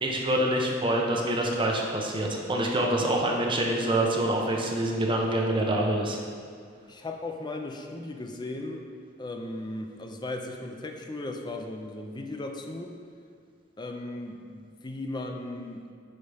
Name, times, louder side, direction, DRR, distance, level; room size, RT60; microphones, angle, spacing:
voice 1, 0.0-6.2, right 1 dB, 25° right, -1 dB, 0.9 m, -26 dB
voice 2, 6.9-8.8 9.2-12.9 13.8-15.9, left 2 dB, 25° left, 3 dB, 0.5 m, -36 dB
9.6 x 5.1 x 3.4 m, 2.1 s
head